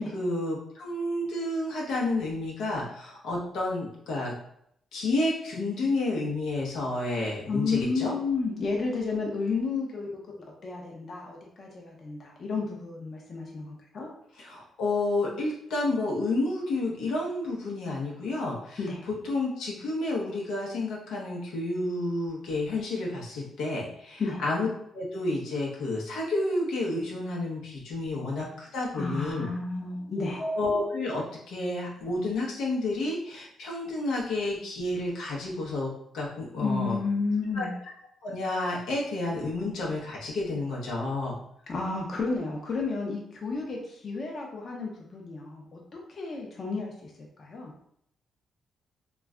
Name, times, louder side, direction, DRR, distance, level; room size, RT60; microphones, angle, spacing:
voice 1, 0.0-4.3 4.9-8.1 14.4-18.8 19.1-24.7 24.9-29.5 30.2-37.0 37.5-37.7 38.2-41.4, left 2 dB, 90° left, -3 dB, 0.7 m, -30 dB
voice 2, 7.5-10.2 10.6-14.1 18.8-19.0 24.2-24.4 28.9-30.5 36.6-37.7 41.7-47.1 47.4-47.7, left 4 dB, 45° left, -1 dB, 0.6 m, -32 dB
2.3 x 2.1 x 3.5 m, 0.71 s
cardioid pair, 110°, 0 cm